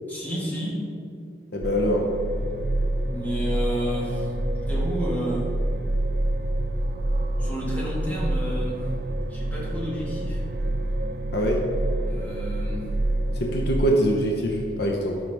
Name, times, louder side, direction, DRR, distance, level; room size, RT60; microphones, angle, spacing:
voice 1, 0.1-0.8 3.0-4.3 4.7-5.5 7.4-8.9 9.3-10.4 12.0-12.9, equal, 10° left, -5 dB, 1.8 m, -30 dB
voice 2, 1.5-2.1 11.3-11.6 13.4-15.2, equal, 60° left, 1 dB, 0.8 m, -23 dB
sound 1, 1.6-13.7, right 1 dB, 60° right, 0.6 m, -27 dB
13.0 x 5.7 x 3.5 m, 2.4 s
head